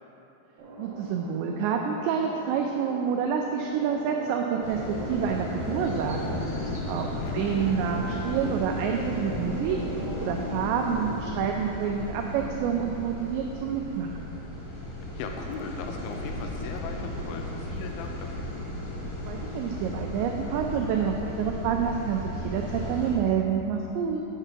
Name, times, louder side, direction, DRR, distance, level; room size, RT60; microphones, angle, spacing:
sound 1, 0.6-11.3, right 2 dB, 55° right, 2.5 m, -39 dB
voice 1, 0.8-9.8 10.2-14.3 19.3-24.2, right 7 dB, 90° right, 2 dB, 2.5 m, -28 dB
sound 2, 4.6-23.1, left 1 dB, 45° left, 1.6 m, -35 dB
voice 2, 7.0-7.4 15.2-18.5, left 5 dB, 85° left, 3 dB, 2.9 m, -39 dB
8.9 x 5.6 x 6.0 m, 3.0 s
omnidirectional pair, 5.6 m